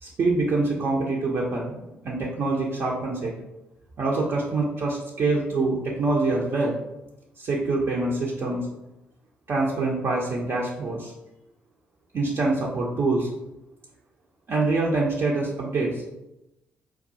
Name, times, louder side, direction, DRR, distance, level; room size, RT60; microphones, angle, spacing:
voice 1, 0.0-3.3 4.0-6.8 7.4-8.6 9.5-11.1 12.1-13.3 14.5-16.0, right 3 dB, 45° right, -4 dB, 0.6 m, -25 dB
4.6 x 2.3 x 2.6 m, 0.92 s
figure-of-eight pair, 40°, 6 cm